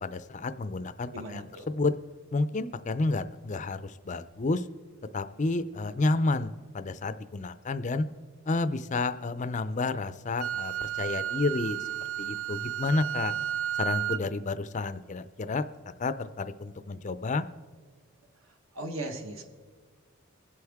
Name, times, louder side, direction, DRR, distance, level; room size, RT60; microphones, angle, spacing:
voice 1, 0.0-1.9 2.3-4.7 5.1-8.1 8.5-11.9 12.2-13.3 13.8-15.7 16.0-17.4, left 3 dB, 35° left, 12 dB, 0.5 m, -30 dB
voice 2, 1.1-1.7 18.7-19.4, right 1 dB, 60° right, 5 dB, 1.3 m, -37 dB
Wind instrument woodwind instrument, 10.4-14.2, right 11 dB, 85° right, 0.5 m, -32 dB
23.5 x 8.0 x 3.6 m, 1.5 s
head